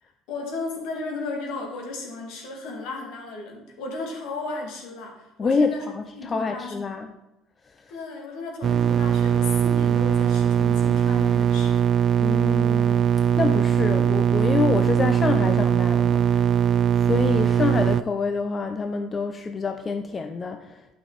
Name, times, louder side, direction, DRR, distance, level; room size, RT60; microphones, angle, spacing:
voice 1, 0.0-5.8 6.2-7.1 7.9-11.9, left 3 dB, 75° left, 0 dB, 2.2 m, -35 dB
voice 2, 5.4-7.1 7.8-7.9 12.2-13.1 13.4-16.5 17.0-20.9, left 4 dB, 30° left, 7 dB, 0.6 m, -27 dB
sound 1, 8.6-18.0, right 8 dB, 45° right, 0.3 m, -20 dB
9.0 x 6.1 x 4.0 m, 0.97 s
supercardioid pair, 85°, 0 cm